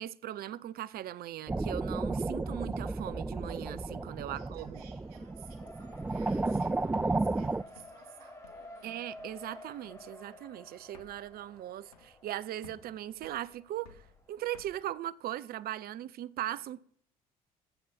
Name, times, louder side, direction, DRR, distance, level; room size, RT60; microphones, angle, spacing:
voice 1, 0.0-4.8 8.8-16.8, right 13 dB, 55° right, 0.6 m, -39 dB
sound 1, 1.5-7.6, right 2 dB, 10° right, 0.3 m, -33 dB
Race car auto racing, 3.6-14.6, left 1 dB, 15° left, 2.9 m, -53 dB
voice 2, 4.3-9.1, right 9 dB, 80° right, 1.2 m, -57 dB
sound 2, 6.3-8.8 9.2-9.6 9.8-10.2 10.5-10.6 10.8-12.3 12.6-14.7, left 5 dB, 85° left, 1.0 m, -58 dB
12.5 x 7.6 x 4.2 m
hypercardioid pair, 50°, 19 cm